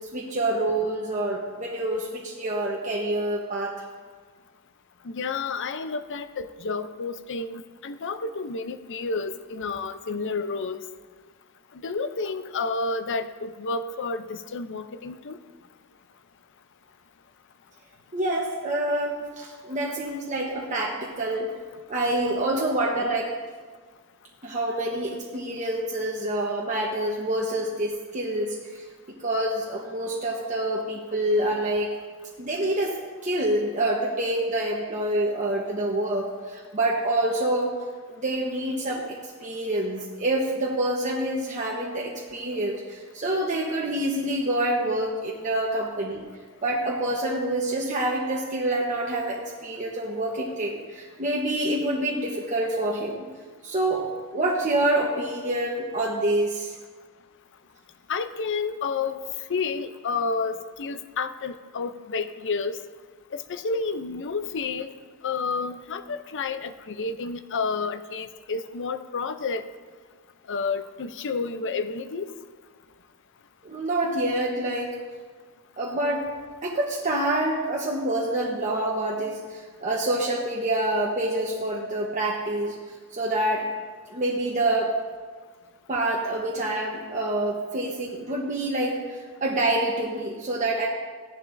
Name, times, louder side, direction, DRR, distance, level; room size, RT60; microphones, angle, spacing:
voice 1, 0.1-3.7 18.1-21.5 21.9-23.3 24.4-28.8 29.2-31.9 32.4-33.0 33.2-37.7 38.1-39.0 39.4-46.2 46.6-53.3 53.6-54.1 54.3-56.7 73.6-74.9 75.8-76.3 76.6-82.7 83.1-83.7 84.1-84.9 85.9-90.9, right 1 dB, 35° right, -3 dB, 1.1 m, -27 dB
voice 2, 5.0-10.8 11.8-15.4 58.1-59.2 59.5-62.8 63.3-64.9 65.2-69.6 70.5-72.3, left 4 dB, 60° left, 10 dB, 0.6 m, -30 dB
15.0 x 10.5 x 2.6 m, 1.5 s
head